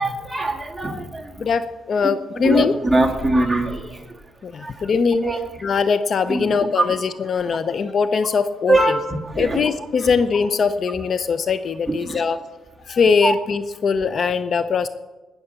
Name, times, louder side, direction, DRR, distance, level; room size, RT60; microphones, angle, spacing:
voice 1, 0.0-1.3 2.4-4.1 4.6-4.7 5.2-5.4 6.3-6.9 7.5-7.6 8.7-9.0 9.2-9.6 11.9-12.2 13.2-13.3, right 2 dB, 10° right, 0 dB, 2.1 m, -22 dB
voice 2, 1.4-2.7 4.4-5.3 5.6-9.0 9.4-12.4 12.9-14.9, left 5 dB, 50° left, 11 dB, 0.6 m, -21 dB
19.0 x 7.1 x 6.8 m, 1.2 s
cardioid pair, 90°, 0 cm